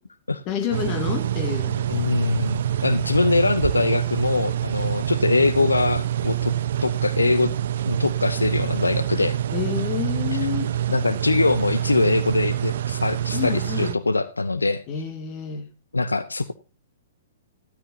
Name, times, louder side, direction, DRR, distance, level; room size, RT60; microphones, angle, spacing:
voice 1, 0.5-1.8 9.5-10.7 13.3-13.9 14.9-15.7, left 8 dB, 30° left, 7 dB, 2.1 m, -28 dB
sound 1, 0.7-13.9, right 11 dB, 55° right, 0.5 m, -26 dB
voice 2, 1.9-6.5 6.8-7.5 7.8-9.4 10.3-10.4 10.9-14.8 15.9-16.5, left 3 dB, 80° left, 13 dB, 0.7 m, -22 dB
13.0 x 12.5 x 2.7 m, 0.28 s
figure-of-eight pair, 115°, 0 cm